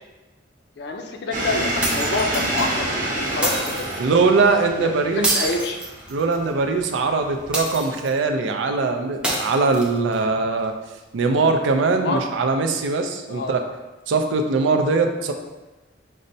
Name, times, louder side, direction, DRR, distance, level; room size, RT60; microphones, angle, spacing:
voice 1, 0.8-3.9 4.8-5.8 11.9-12.2 13.3-13.5, left 3 dB, 65° left, 4 dB, 0.4 m, -27 dB
sound 1, 1.3-7.8, right 1 dB, 45° right, 0.8 m, -28 dB
sound 2, 1.8-2.7 3.4-4.0 5.2-6.5 7.5-8.2 9.2-10.2, right 1 dB, 5° right, 0.5 m, -27 dB
voice 2, 4.0-5.4 6.1-10.7 11.1-13.6 14.1-15.3, right 3 dB, 85° right, 5 dB, 0.4 m, -21 dB
5.2 x 2.1 x 2.6 m, 1.1 s
head